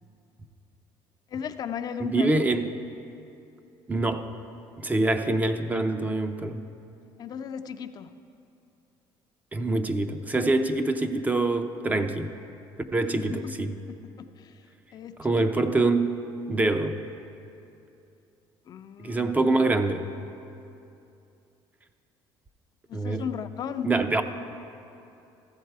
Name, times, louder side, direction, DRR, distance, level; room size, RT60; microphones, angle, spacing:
voice 1, 1.3-2.4 7.2-8.1 13.1-13.5 13.9-14.6 14.9-15.5 18.7-19.3 22.9-23.9, left 8 dB, 45° left, 9 dB, 0.4 m, -36 dB
voice 2, 2.0-2.7 3.9-4.3 4.8-6.6 9.5-12.3 12.9-13.7 15.2-16.9 19.0-20.1 22.9-23.3 23.8-24.2, right 2 dB, 15° right, 8 dB, 0.5 m, -25 dB
14.5 x 7.2 x 4.6 m, 2.7 s
cardioid pair, 125°, 10 cm